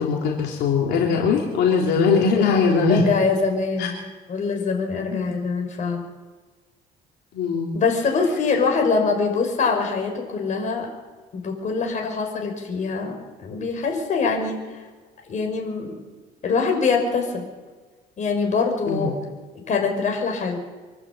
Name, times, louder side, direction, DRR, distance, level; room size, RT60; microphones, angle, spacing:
voice 1, 0.0-3.0 3.8-3.9 5.1-5.4 7.3-7.7 18.9-19.2, left 5 dB, 80° left, -1 dB, 3.7 m, -21 dB
voice 2, 2.9-6.0 7.7-10.9 11.3-14.6 15.3-16.0 16.4-17.5 18.2-19.2 19.7-20.6, left 4 dB, 45° left, 3 dB, 5.7 m, -24 dB
26.0 x 11.5 x 8.6 m, 1.4 s
cardioid pair, 110°, 17 cm